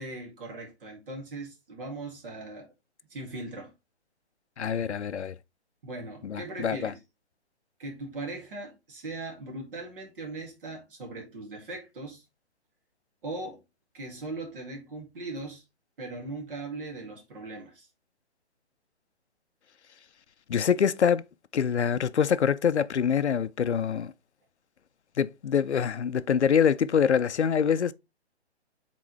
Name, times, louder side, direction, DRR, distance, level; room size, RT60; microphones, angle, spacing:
voice 1, 0.0-2.7 3.1-3.7 5.8-7.0 7.8-12.2 13.2-13.6 13.9-15.6 16.0-17.9, right 2 dB, 55° right, 2.2 m, -39 dB
voice 2, 4.6-5.3 6.2-6.9 20.5-21.2 21.5-24.1 25.2-27.9, left 7 dB, 85° left, 0.6 m, -25 dB
8.3 x 3.8 x 3.1 m
figure-of-eight pair, 135°, 33 cm